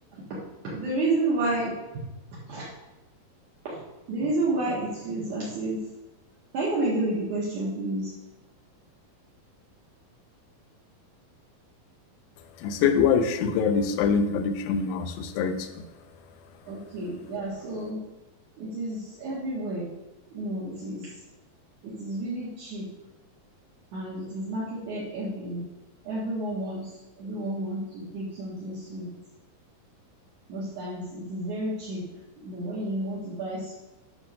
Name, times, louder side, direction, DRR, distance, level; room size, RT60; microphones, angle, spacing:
voice 1, 0.6-2.0 2.5-2.7 3.6-3.8 4.1-5.8 6.5-8.1 16.7-18.0 18.6-19.9 20.3-21.2 21.8-22.9 23.9-25.7 26.0-29.1 30.5-32.1 32.4-33.7, right 2 dB, 60° right, -7 dB, 2.7 m, -31 dB
voice 2, 12.6-15.8, left 6 dB, 85° left, 8 dB, 2.5 m, -24 dB
9.9 x 3.6 x 6.4 m, 1.0 s
omnidirectional pair, 4.1 m